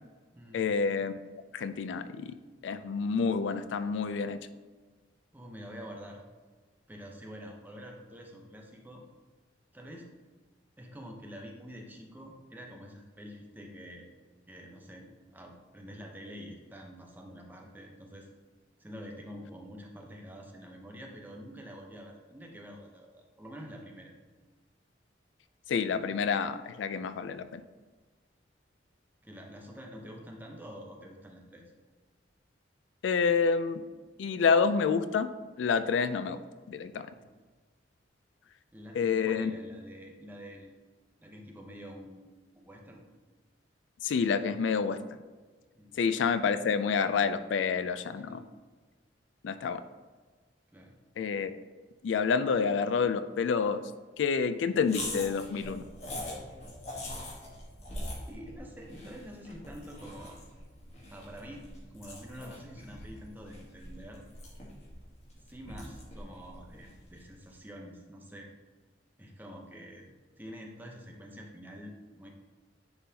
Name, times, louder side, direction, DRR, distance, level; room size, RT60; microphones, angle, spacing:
voice 1, 0.5-1.1 1.5-2.4 2.6-4.4 25.7-27.6 33.0-33.8 34.2-35.3 35.6-36.4 36.7-37.1 38.9-39.5 44.0-45.0 45.9-48.4 49.4-49.8 51.2-51.5 52.0-53.8 54.2-55.8, left 5 dB, 75° left, 11 dB, 0.3 m, -28 dB
voice 2, 5.3-6.2 6.9-9.0 9.7-10.1 10.8-14.1 14.5-18.3 18.8-24.1 29.2-31.7 37.1-37.3 38.7-40.7 41.2-43.1 45.7-46.0 48.3-48.4 50.7-50.9 58.3-60.4 61.1-61.6 61.9-64.2 65.5-68.5 69.2-70.0 70.4-72.3, equal, 10° right, 0 dB, 0.8 m, -47 dB
sound 1, 54.8-67.3, left 1 dB, 35° left, 1.2 m, -43 dB
9.6 x 3.9 x 2.8 m, 1.4 s
head